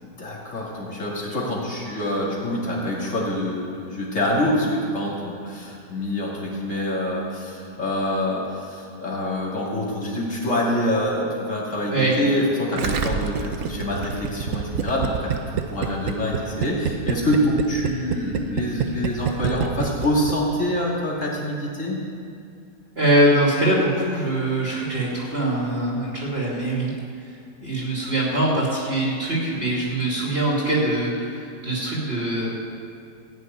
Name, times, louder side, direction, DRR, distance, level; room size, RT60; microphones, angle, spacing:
voice 1, 0.0-15.3 15.7-22.0, left 1 dB, 45° left, -4 dB, 3.0 m, -26 dB
Gurgling, 12.8-20.3 20.6-20.7, right 8 dB, 60° right, 1.1 m, -26 dB
voice 2, 22.9-26.9 27.6-32.5, right 1 dB, 35° right, -5 dB, 2.6 m, -23 dB
15.5 x 6.4 x 9.3 m, 2.5 s
omnidirectional pair, 1.8 m